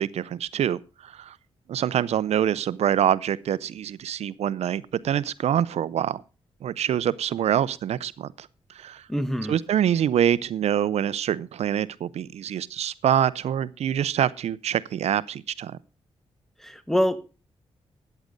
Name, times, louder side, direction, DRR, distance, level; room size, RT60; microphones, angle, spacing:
voice 1, 0.0-1.3 1.7-6.2 6.6-8.5 8.8-9.0 9.5-15.8, right 10 dB, 80° right, 0.5 m, -25 dB
voice 2, 9.1-9.6 16.6-17.2, equal, 5° left, 1.4 m, -25 dB
13.5 x 9.3 x 5.1 m
cardioid pair, 75°, 11 cm